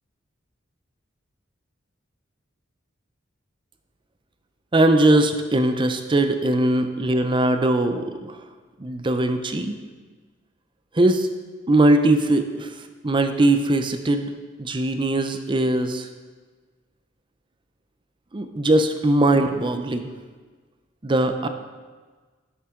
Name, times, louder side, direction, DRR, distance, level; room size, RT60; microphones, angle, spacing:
voice 1, 4.7-8.4 8.8-9.7 10.9-11.3 11.7-12.7 13.0-14.3 14.6-16.1 18.3-20.0 21.0-21.5, right 1 dB, 25° right, 7 dB, 0.6 m, -20 dB
10.5 x 7.3 x 3.7 m, 1.4 s
head